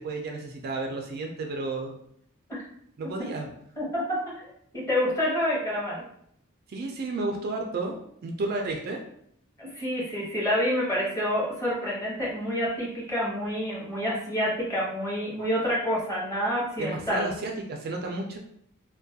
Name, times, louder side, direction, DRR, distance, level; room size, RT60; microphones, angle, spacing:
voice 1, 0.0-2.0 3.0-3.5 6.7-9.0 16.8-18.4, right 2 dB, 45° right, 2 dB, 0.3 m, -32 dB
voice 2, 4.7-6.0 9.6-17.3, equal, 15° left, -6 dB, 0.8 m, -28 dB
2.3 x 2.1 x 2.7 m, 0.71 s
head